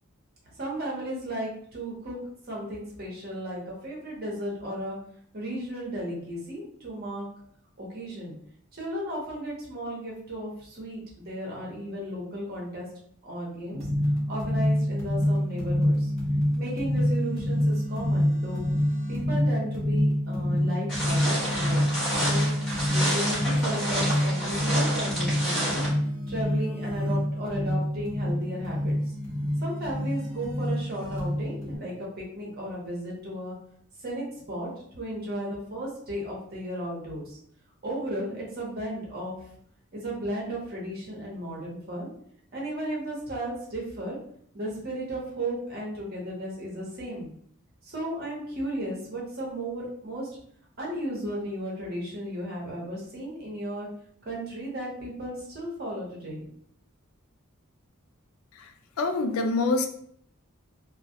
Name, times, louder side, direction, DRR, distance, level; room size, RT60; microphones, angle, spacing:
voice 1, 0.6-2.2 2.5-5.0 5.3-7.2 7.8-8.3 8.7-12.9 13.2-13.8 14.3-16.1 16.6-18.7 19.1-25.8 26.3-29.1 29.6-33.5 34.0-34.7 35.0-37.4 37.8-39.4 39.9-42.1 42.5-44.2 44.5-47.3 47.8-50.3 50.8-53.9 54.2-56.4, right 1 dB, 50° right, -4 dB, 0.9 m, -34 dB
Death Star Generator Module, 13.7-31.8, equal, 30° right, 1.1 m, -27 dB
sound 1, 20.9-25.9, equal, 5° left, 1.2 m, -30 dB
voice 2, 58.5-59.9, left 3 dB, 75° left, 6 dB, 0.3 m, -26 dB
2.3 x 2.1 x 2.7 m, 0.65 s
head